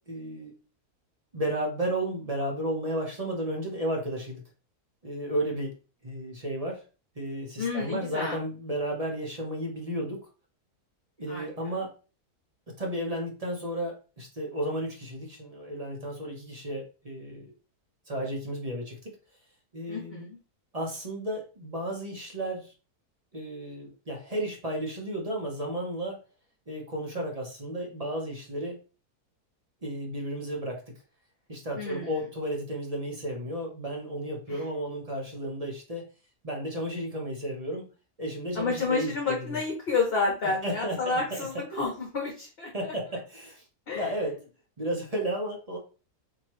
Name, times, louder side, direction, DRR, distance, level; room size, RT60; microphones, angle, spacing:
voice 1, 0.1-0.5 1.3-4.4 5.0-5.7 6.0-6.8 7.2-10.3 11.2-11.9 12.7-17.5 18.1-18.9 19.7-20.3 20.7-22.7 23.3-26.2 26.7-28.8 29.8-30.8 31.5-36.1 36.4-37.9 38.2-39.3 40.6-41.2 41.7-41.8 42.7-43.6 43.9-44.3 44.8-45.8, right 1 dB, 30° right, 0 dB, 0.9 m, -33 dB
voice 2, 7.6-8.4 11.3-11.5 19.9-20.4 31.8-32.2 34.5-34.6 38.5-42.9 43.9-44.1, left 4 dB, 45° left, 0 dB, 1.0 m, -30 dB
4.3 x 3.0 x 3.0 m, 0.34 s
omnidirectional pair, 1.7 m